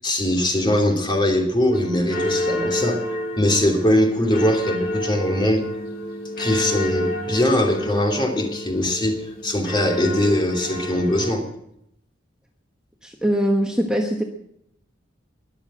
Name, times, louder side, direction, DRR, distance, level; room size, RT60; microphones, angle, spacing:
voice 1, 0.0-3.0 3.4-5.6 6.4-11.5, left 1 dB, 25° left, 1 dB, 2.8 m, -21 dB
sound 1, 1.7-11.3, left 1 dB, 50° left, 2.7 m, -29 dB
voice 2, 13.0-14.2, equal, 5° right, 1 dB, 1.2 m, -22 dB
21.5 x 7.2 x 7.7 m, 0.77 s
head